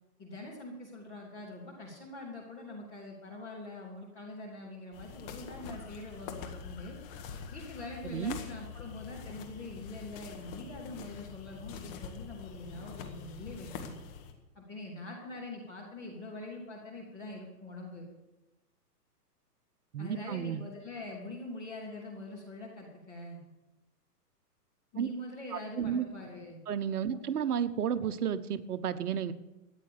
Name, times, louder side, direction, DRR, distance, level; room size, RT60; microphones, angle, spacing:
voice 1, 0.2-7.0 7.5-14.0 14.5-18.1 20.0-23.4 24.9-26.6 27.1-27.2, left 2 dB, 5° left, -8 dB, 0.4 m, -44 dB
sound 1, 4.9-14.3, left 6 dB, 35° left, 1.8 m, -45 dB
voice 2, 8.0-8.4 19.9-20.6 25.0-25.1 25.5-26.1 26.7-29.3, right 8 dB, 65° right, 11 dB, 1.1 m, -32 dB
14.0 x 9.7 x 6.8 m, 1.0 s
hypercardioid pair, 130°, 48 cm